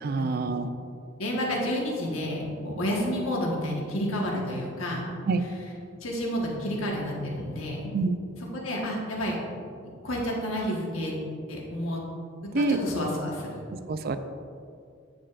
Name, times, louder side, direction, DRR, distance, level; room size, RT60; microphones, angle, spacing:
voice 1, 0.0-0.7 5.3-5.4 7.9-8.2 12.5-12.8 13.7-14.2, right 3 dB, 50° right, 9 dB, 0.4 m, -26 dB
voice 2, 1.2-5.0 6.0-7.9 8.5-9.4 9.8-11.1 11.5-12.0 12.5-13.6, equal, 90° left, -2 dB, 1.3 m, -30 dB
8.6 x 7.1 x 2.4 m, 2.3 s
head